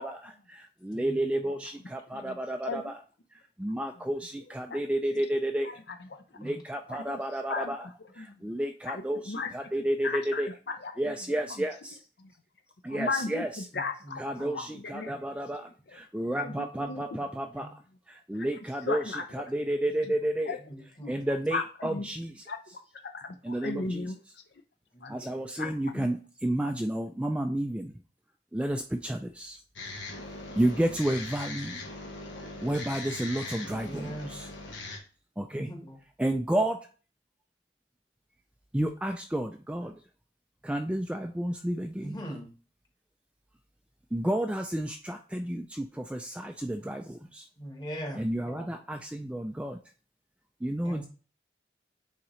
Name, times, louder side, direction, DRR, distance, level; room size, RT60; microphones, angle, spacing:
voice 1, 0.0-3.0 3.6-5.8 6.4-7.9 8.1-10.5 11.0-12.0 12.8-13.5 14.2-17.8 18.1-20.6 21.1-22.3 23.4-24.1 25.1-27.9 28.5-29.6 30.5-31.8 32.6-34.5 35.4-35.7 36.2-36.9 38.7-39.9 40.6-42.2 44.1-47.5 48.1-49.8 50.6-51.1, right 1 dB, 5° right, 4 dB, 0.3 m, -31 dB
voice 2, 0.9-1.5 6.4-6.6 10.0-10.2 13.7-14.8 16.3-17.0 17.5-17.7 19.6-19.7 20.7-21.2 23.6-23.7 24.9-25.2 25.6-25.7 33.6-34.3 35.5-36.0 42.0-42.5 47.6-48.7 50.8-51.1, right 1 dB, 20° left, 2 dB, 1.3 m, -42 dB
voice 3, 5.6-6.5 6.9-7.2 7.5-7.8 8.2-8.4 8.9-9.5 10.0-10.9 11.3-11.4 12.2-12.3 12.9-13.4 13.7-14.2 14.5-15.2 15.9-16.0 16.4-17.2 18.3-18.5 18.9-19.2 20.5-20.6 21.0-21.1 21.5-22.1 22.5-22.8 23.1-24.2 25.0-25.1 25.6-26.1, left 4 dB, 60° left, 7 dB, 0.6 m, -36 dB
sound 1, 29.8-35.0, left 2 dB, 90° left, 1.3 m, -40 dB
8.8 x 3.7 x 3.1 m, 0.37 s
head